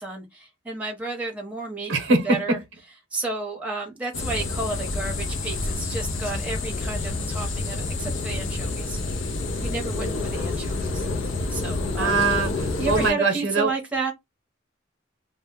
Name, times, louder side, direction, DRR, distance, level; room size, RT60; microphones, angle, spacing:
voice 1, 0.0-1.9 2.2-2.6 3.1-9.0 9.6-11.1 11.5-12.2 12.8-14.1, right 3 dB, 5° right, 0.7 m, -32 dB
voice 2, 1.9-2.4 12.0-13.7, right 3 dB, 80° right, 0.7 m, -22 dB
sound 1, 4.1-13.1, left 2 dB, 80° left, 0.5 m, -28 dB
2.1 x 2.0 x 3.5 m
head